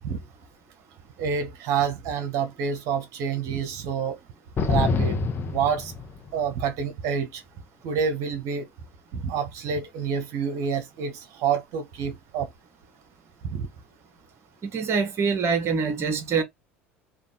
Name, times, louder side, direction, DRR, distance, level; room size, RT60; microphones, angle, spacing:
voice 1, 1.2-4.2 4.7-5.2 5.5-5.9 6.3-7.4 7.8-8.7 9.1-12.5 13.4-13.7, right 6 dB, 55° right, 1.2 m, -28 dB
sound 1, 4.6-6.5, left 4 dB, 35° left, 1.0 m, -26 dB
voice 2, 14.6-16.4, right 5 dB, 40° right, 1.4 m, -25 dB
3.5 x 2.6 x 3.7 m
hypercardioid pair, 70°, 7 cm